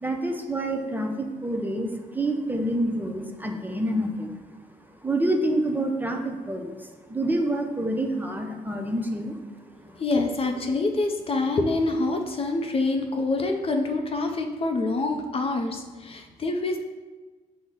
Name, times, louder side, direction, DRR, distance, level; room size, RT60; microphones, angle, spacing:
voice 1, 0.0-4.4 5.0-9.4, right 1 dB, 10° right, 3 dB, 0.5 m, -27 dB
voice 2, 10.0-16.8, left 2 dB, 40° left, 3 dB, 0.5 m, -26 dB
6.0 x 2.1 x 3.7 m, 1.3 s
cardioid pair, 70°, 15 cm